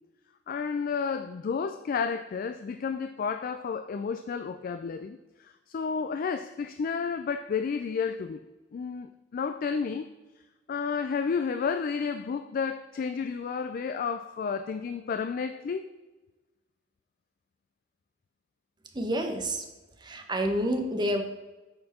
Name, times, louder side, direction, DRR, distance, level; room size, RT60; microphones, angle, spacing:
voice 1, 0.5-8.4 8.7-10.1 10.7-15.9, left 5 dB, 45° left, 0.3 m, -31 dB
voice 2, 18.9-19.6 20.0-21.2, equal, 25° right, 0.8 m, -28 dB
8.6 x 4.4 x 4.2 m
head